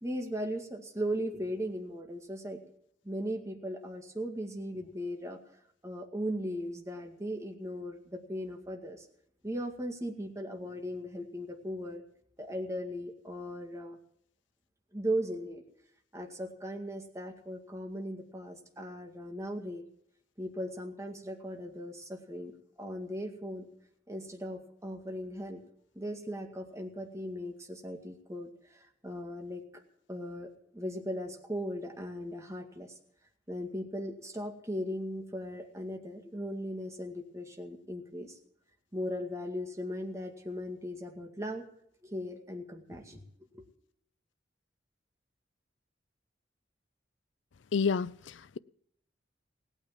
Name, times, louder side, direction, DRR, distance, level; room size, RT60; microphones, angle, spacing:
voice 1, 0.0-2.6 3.0-5.4 5.8-9.1 9.4-12.0 12.4-14.0 14.9-15.6 16.1-19.8 20.4-22.5 22.8-23.7 24.1-25.6 26.0-29.6 30.1-32.9 33.5-38.4 38.9-41.7 42.0-43.2 43.5-43.7, equal, 15° right, 2.0 m, -38 dB
voice 2, 47.7-48.6, left 5 dB, 80° left, 0.5 m, -30 dB
18.5 x 9.1 x 7.5 m
head